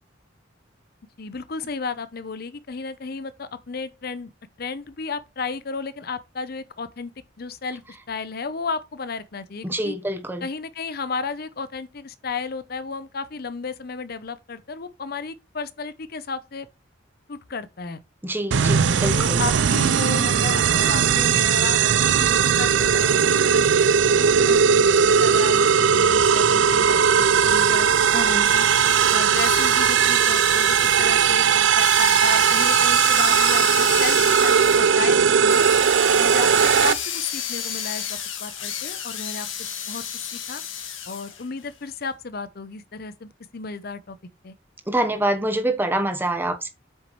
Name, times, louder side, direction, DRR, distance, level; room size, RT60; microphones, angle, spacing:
voice 1, 1.2-4.3 4.6-7.1 7.4-7.8 8.1-9.9 10.4-16.7 17.3-18.0 19.1-24.1 24.4-27.9 28.2-28.7 29.1-35.7 36.2-40.6 41.1-44.2 44.4-44.6, left 4 dB, 50° left, 0.7 m, -33 dB
voice 2, 9.6-10.5 18.2-19.4 28.1-28.5 44.9-46.7, right 1 dB, 10° right, 1.0 m, -25 dB
sound 1, 18.5-36.9, right 7 dB, 70° right, 0.5 m, -18 dB
sound 2, 27.5-41.4, left 8 dB, 85° left, 2.0 m, -32 dB
8.2 x 6.2 x 3.1 m
head